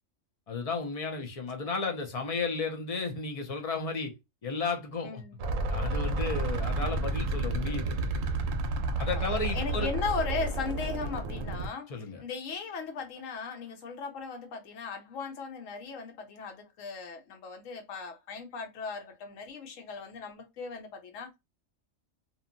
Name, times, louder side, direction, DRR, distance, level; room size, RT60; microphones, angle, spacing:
voice 1, 0.5-4.1 4.4-5.2 5.7-8.0 9.0-9.9 11.9-12.2, left 4 dB, 40° left, 0.5 m, -33 dB
voice 2, 5.0-5.4 9.0-9.2 9.5-21.4, left 5 dB, 80° left, 1.1 m, -37 dB
sound 1, 5.4-11.7, right 2 dB, 80° right, 1.0 m, -31 dB
2.8 x 2.2 x 2.5 m
omnidirectional pair, 1.3 m